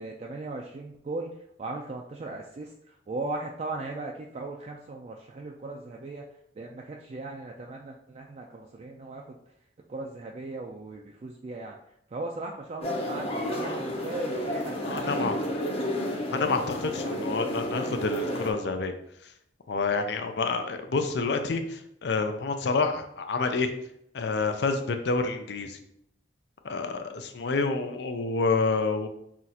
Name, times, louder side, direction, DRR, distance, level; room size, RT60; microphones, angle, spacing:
voice 1, 0.0-6.3 6.6-9.3 9.9-11.8 12.1-15.3 15.7-15.8 17.0-17.2, right 2 dB, 40° right, 0 dB, 0.3 m, -38 dB
sound 1, 12.8-18.5, equal, 35° left, 0.8 m, -31 dB
voice 2, 14.8-15.3 16.3-18.9 19.7-23.7 24.1-25.8 26.6-29.1, left 4 dB, 70° left, 7 dB, 0.5 m, -28 dB
5.9 x 2.5 x 2.7 m, 0.74 s
head